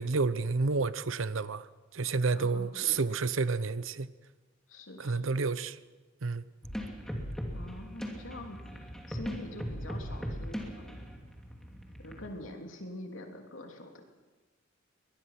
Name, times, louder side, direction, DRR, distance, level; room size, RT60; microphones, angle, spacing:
voice 1, 0.0-1.7 1.9-4.1 5.0-5.8 6.2-6.5, right 4 dB, 80° right, 0.8 m, -30 dB
voice 2, 2.3-3.1 4.7-5.4 7.5-8.8 9.1-11.0 12.0-14.0, left 1 dB, 80° left, 3.2 m, -45 dB
sound 1, 6.6-12.3, equal, 5° left, 2.8 m, -39 dB
23.5 x 20.5 x 5.9 m
head